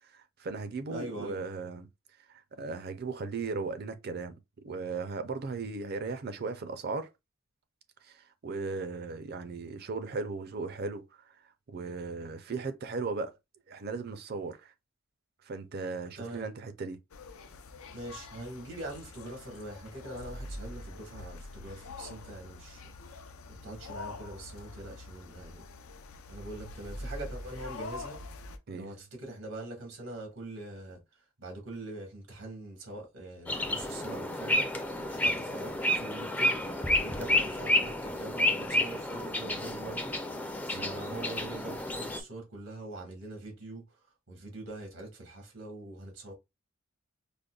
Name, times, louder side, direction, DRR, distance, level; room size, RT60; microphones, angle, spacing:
voice 1, 0.0-1.9 2.3-4.4 4.6-7.1 8.0-11.4 11.7-13.3 13.7-14.7 15.4-17.0 28.7-28.9 40.7-40.9, right 4 dB, 50° right, 0.5 m, -37 dB
voice 2, 0.9-1.4 16.1-16.5 17.9-25.6 26.3-28.2 28.7-31.0 31.4-40.2 40.7-46.3, right 2 dB, 90° right, 1.5 m, -43 dB
sound 1, 17.1-28.6, left 2 dB, 85° left, 0.5 m, -44 dB
sound 2, 33.5-42.2, left 1 dB, 10° left, 0.4 m, -30 dB
5.1 x 2.1 x 2.3 m
head